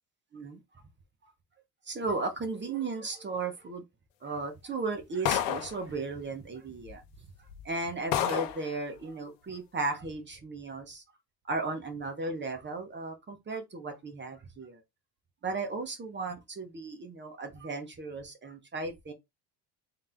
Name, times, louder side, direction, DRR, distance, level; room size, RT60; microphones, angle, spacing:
voice 1, 1.9-3.8 4.2-7.0 7.6-11.0 11.5-14.8 15.4-19.1, right 3 dB, 25° right, 1.2 m, -35 dB
sound 1, 5.3-5.8 6.9-7.0 7.5-7.6 8.1-8.7, left 11 dB, 85° left, 0.9 m, -29 dB
3.6 x 2.9 x 3.7 m
supercardioid pair, 100°, 47 cm